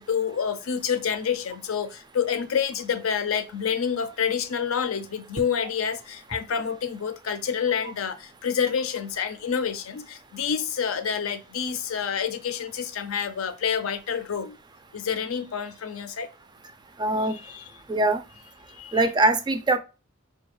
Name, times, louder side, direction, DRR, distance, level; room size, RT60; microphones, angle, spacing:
voice 1, 0.0-14.6 14.9-16.3 17.3-17.6 18.7-19.0, left 7 dB, 85° left, 0.5 m, -28 dB
voice 2, 17.0-17.4 17.9-18.2 18.9-19.8, right 2 dB, 20° right, 0.3 m, -22 dB
4.5 x 2.3 x 3.1 m
head